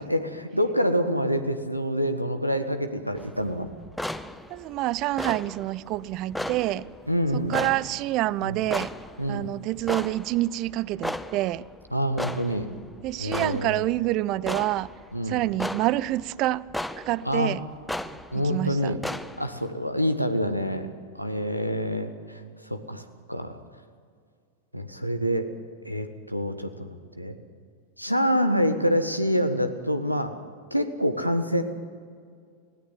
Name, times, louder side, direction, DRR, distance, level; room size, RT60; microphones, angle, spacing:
voice 1, 0.0-3.7 7.1-7.6 8.4-8.6 9.2-9.5 11.9-12.7 13.2-13.8 15.1-15.4 17.2-17.6 18.3-19.0 19.4-20.9 21.1-23.6 24.7-25.5 25.8-27.4 28.0-30.3 30.7-31.6, equal, 90° right, 1.5 m, -26 dB
sound 1, 3.2-19.7, left 1 dB, 5° left, 0.7 m, -36 dB
voice 2, 4.5-6.8 7.3-8.9 9.3-11.6 13.0-14.9 15.3-16.7 17.0-17.6 18.3-19.0, right 16 dB, 40° right, 0.5 m, -27 dB
24.0 x 17.5 x 7.8 m
figure-of-eight pair, 90°, 0 cm